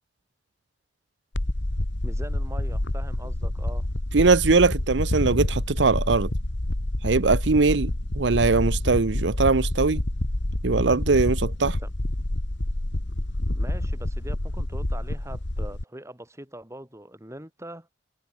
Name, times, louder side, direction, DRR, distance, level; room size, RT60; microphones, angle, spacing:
sound 1, 1.4-15.8, left 1 dB, 90° left, 1.9 m, -28 dB
voice 1, 2.0-3.9 11.8-11.9 13.5-17.9, right 1 dB, 15° right, 7.7 m, -42 dB
voice 2, 4.1-6.3 7.0-10.0 10.6-11.8, right 4 dB, 80° right, 0.8 m, -21 dB
head